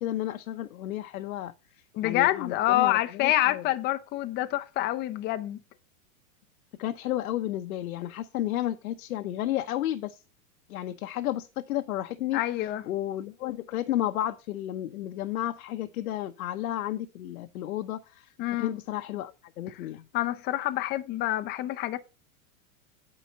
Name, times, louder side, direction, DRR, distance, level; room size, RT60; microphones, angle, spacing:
voice 1, 0.0-1.5 2.0-3.6 6.8-10.2 10.7-12.4 12.8-18.3 18.6-20.0, left 13 dB, 80° left, 0.8 m, -32 dB
voice 2, 1.9-5.6 12.3-12.8 18.4-18.7 20.1-22.0, left 15 dB, 25° left, 0.5 m, -27 dB
8.6 x 4.9 x 5.4 m
hypercardioid pair, 135°, 43 cm